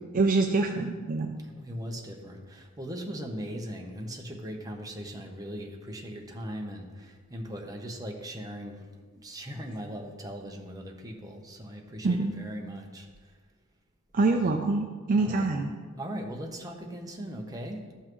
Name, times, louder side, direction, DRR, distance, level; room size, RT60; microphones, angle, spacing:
voice 1, 0.1-1.3 12.0-12.3 14.1-15.7, right 3 dB, 40° right, 4 dB, 0.5 m, -25 dB
voice 2, 1.4-8.9 9.1-13.1 15.1-15.5 16.0-17.8, equal, 15° right, 1 dB, 0.9 m, -39 dB
13.5 x 5.6 x 3.1 m, 1.5 s
head